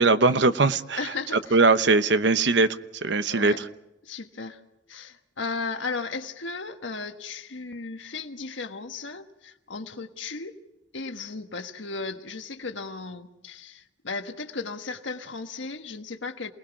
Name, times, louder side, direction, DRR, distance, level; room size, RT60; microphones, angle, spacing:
voice 1, 0.0-1.0 1.5-2.8 3.0-3.5, right 3 dB, 70° right, 12 dB, 1.0 m, -20 dB
voice 2, 1.0-1.6 3.3-3.6 4.0-4.6 4.9-10.6 10.9-16.5, left 4 dB, 90° left, 6 dB, 1.5 m, -35 dB
28.5 x 19.5 x 5.9 m, 0.90 s
head